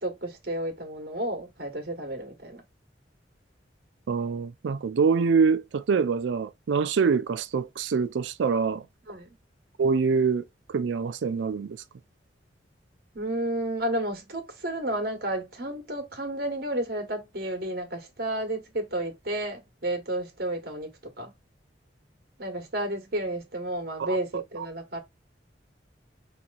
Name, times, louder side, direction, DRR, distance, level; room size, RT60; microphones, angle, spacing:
voice 1, 0.0-2.6 9.1-9.3 13.1-20.9 21.2-21.3 22.4-25.0, right 1 dB, 55° right, 1.3 m, -31 dB
voice 2, 4.1-8.9 9.8-11.8 24.0-24.7, right 5 dB, 85° right, 0.4 m, -25 dB
4.8 x 2.9 x 2.4 m
head